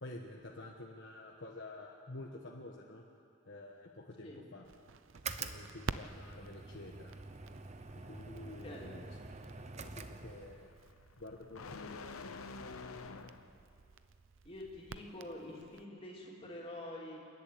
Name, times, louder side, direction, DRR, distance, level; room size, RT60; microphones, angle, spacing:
voice 1, 0.0-3.0 3.5-4.6 5.4-7.1 8.1-9.1 9.8-10.7 11.2-12.4, left 2 dB, 60° left, 0 dB, 1.3 m, -49 dB
Crackle, 4.6-15.8, right 4 dB, 65° right, 0.6 m, -50 dB
sound 1, 5.1-10.8, right 4 dB, 30° right, 0.8 m, -47 dB
sound 2, 7.1-13.6, left 4 dB, 85° left, 1.0 m, -50 dB
voice 2, 8.4-9.0 14.4-17.2, left 1 dB, 25° left, -3 dB, 3.4 m, -47 dB
28.5 x 11.0 x 8.6 m, 2.5 s
head